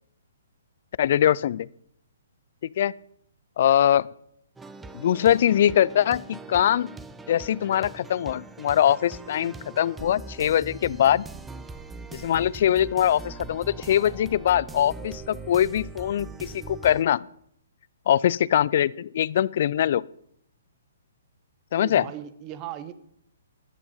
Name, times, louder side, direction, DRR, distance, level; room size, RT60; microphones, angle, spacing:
voice 1, 1.0-1.7 2.8-2.9 3.6-4.1 4.9-6.9 7.3-11.2 12.1-17.3 18.1-20.0 21.7-22.0, left 10 dB, 55° left, 22 dB, 0.4 m, -22 dB
sound 1, 4.6-17.0, right 3 dB, 10° right, 0.8 m, -41 dB
voice 2, 21.8-22.9, right 12 dB, 30° right, 13 dB, 1.2 m, -37 dB
14.5 x 11.0 x 5.6 m, 0.69 s
figure-of-eight pair, 130°, 0 cm